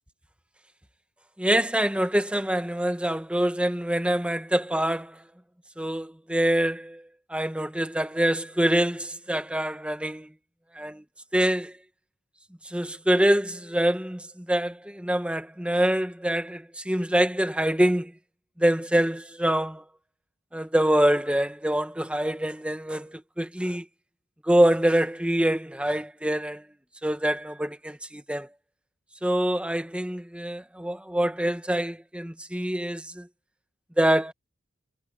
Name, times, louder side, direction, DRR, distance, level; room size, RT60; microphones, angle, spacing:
voice 1, 1.4-5.2 5.8-7.0 7.3-10.3 10.7-11.0 11.3-11.7 12.7-18.1 18.6-19.8 20.5-23.8 24.4-26.6 27.0-28.5 29.2-33.3 34.0-34.3, right 1 dB, 5° right, 1.5 m, -25 dB
head